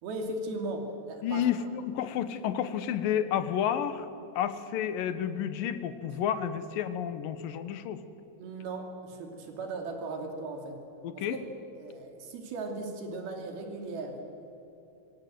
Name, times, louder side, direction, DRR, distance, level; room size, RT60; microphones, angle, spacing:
voice 1, 0.0-1.4 8.4-10.8 11.1-11.4 11.7-14.2, right 2 dB, 70° right, 3 dB, 4.6 m, -37 dB
voice 2, 1.2-4.1 4.4-8.0 11.0-11.4, left 9 dB, 70° left, 11 dB, 2.7 m, -30 dB
25.5 x 25.0 x 7.8 m, 2.9 s
omnidirectional pair, 4.5 m